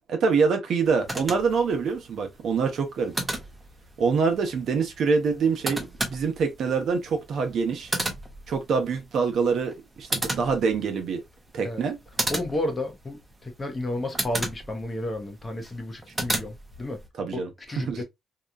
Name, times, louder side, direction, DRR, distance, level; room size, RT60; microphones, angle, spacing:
voice 1, 0.1-3.1 4.0-7.9 8.5-11.2 11.5-12.0 17.2-17.5 17.8-18.0, right 5 dB, 65° right, 0.8 m, -25 dB
sound 1, 0.8-17.1, right 1 dB, 15° right, 0.8 m, -35 dB
voice 2, 12.3-17.0 17.3-18.0, left 1 dB, 25° left, 0.8 m, -32 dB
2.9 x 2.3 x 2.4 m
cardioid pair, 90°, 0 cm